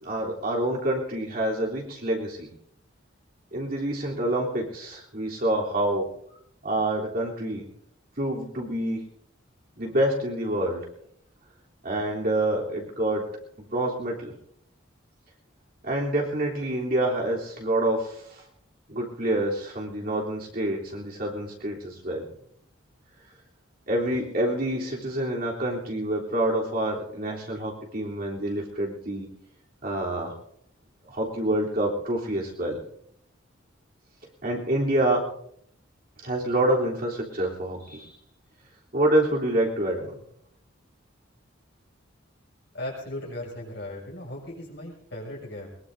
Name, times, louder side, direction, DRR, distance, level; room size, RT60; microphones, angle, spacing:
voice 1, 0.0-2.5 3.5-6.1 6.6-7.7 8.2-9.0 9.8-10.9 11.8-13.3 13.7-14.3 15.8-18.4 18.9-22.2 23.9-29.3 29.8-30.4 31.1-32.8 34.4-35.3 36.2-38.1 38.9-40.1, right 1 dB, 45° right, -3 dB, 3.6 m, -27 dB
voice 2, 42.7-45.7, left 1 dB, 55° left, -2 dB, 6.6 m, -37 dB
22.5 x 21.5 x 2.7 m, 0.69 s
head